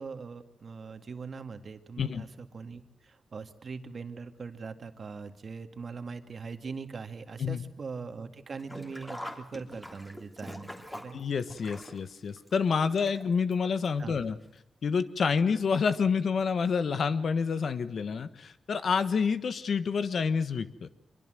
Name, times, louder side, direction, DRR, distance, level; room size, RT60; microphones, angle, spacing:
voice 1, 0.0-11.2 14.0-14.2, right 5 dB, 50° right, 8 dB, 2.0 m, -41 dB
Sink (filling or washing), 8.6-13.5 13.8-13.9 15.0-15.1 15.4-15.5, equal, 10° left, 3.2 m, -44 dB
voice 2, 11.1-14.4 14.8-20.9, left 5 dB, 65° left, 13 dB, 1.3 m, -28 dB
25.0 x 23.0 x 7.8 m, 0.80 s
cardioid pair, 90°, 0 cm